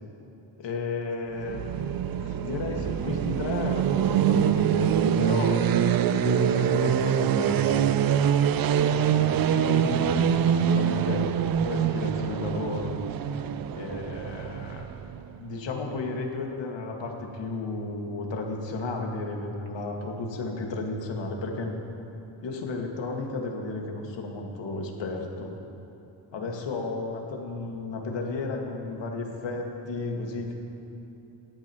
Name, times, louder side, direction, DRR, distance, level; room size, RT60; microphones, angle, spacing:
voice 1, 0.6-1.6 2.2-7.9 8.9-11.3 11.6-12.9 13.7-14.8 15.4-21.8 22.4-25.5 26.3-30.5, left 3 dB, 65° left, 1 dB, 1.9 m, -33 dB
sound 1, 1.4-15.3, right 9 dB, 50° right, 0.5 m, -25 dB
17.0 x 12.5 x 3.0 m, 3.0 s
cardioid pair, 95°, 47 cm